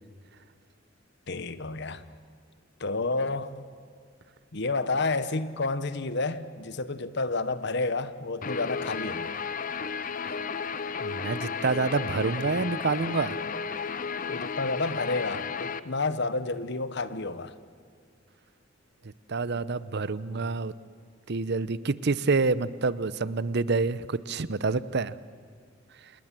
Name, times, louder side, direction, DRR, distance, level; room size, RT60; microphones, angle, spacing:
voice 1, 1.3-2.0 2.8-3.6 4.5-9.3 14.3-17.5, left 3 dB, 60° left, 13 dB, 1.2 m, -30 dB
Guitar, 8.4-15.8, left 5 dB, 45° left, 0.8 m, -33 dB
voice 2, 11.0-13.4 19.3-20.7 21.3-25.1, right 4 dB, 60° right, 17 dB, 0.8 m, -27 dB
27.5 x 20.0 x 7.6 m, 2.1 s
head